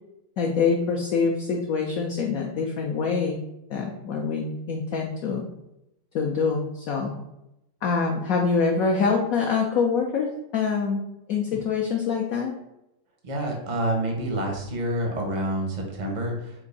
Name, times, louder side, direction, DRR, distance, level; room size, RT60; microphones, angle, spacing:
voice 1, 0.4-3.4 3.7-5.5 6.1-7.1 7.8-12.6, left 5 dB, 75° left, 1 dB, 0.8 m, -25 dB
voice 2, 13.2-16.5, right 1 dB, 50° right, 1 dB, 0.5 m, -28 dB
4.5 x 2.5 x 4.0 m, 0.87 s
omnidirectional pair, 2.0 m